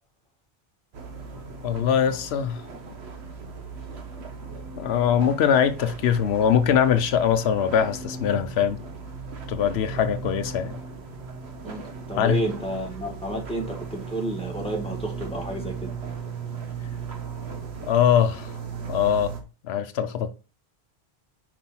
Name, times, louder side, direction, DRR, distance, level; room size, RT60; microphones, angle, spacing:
sound 1, 0.9-19.4, right 5 dB, 85° right, 1.4 m, -37 dB
voice 1, 1.6-2.6 4.8-8.8 9.5-10.8 12.2-12.4 17.8-18.5 18.9-19.3 19.6-20.3, left 8 dB, 85° left, 0.9 m, -22 dB
voice 2, 11.6-15.9, right 1 dB, 5° left, 1.8 m, -31 dB
5.4 x 5.2 x 4.2 m
omnidirectional pair, 1.1 m